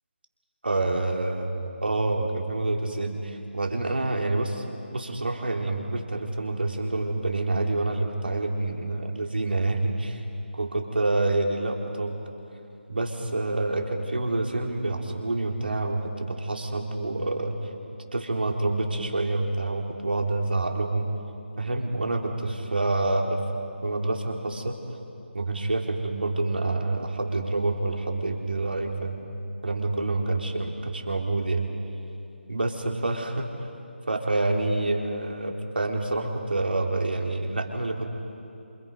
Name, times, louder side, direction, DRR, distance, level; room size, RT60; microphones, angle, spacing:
voice 1, 0.6-4.6 4.9-10.2 10.5-12.1 12.9-17.6 18.1-21.1 21.6-23.4 23.8-24.8 25.3-29.2 29.6-31.7 32.5-33.5 34.1-38.1, right 2 dB, 60° right, 1 dB, 3.5 m, -27 dB
29.5 x 27.5 x 5.3 m, 2.7 s
figure-of-eight pair, 155°, 6 cm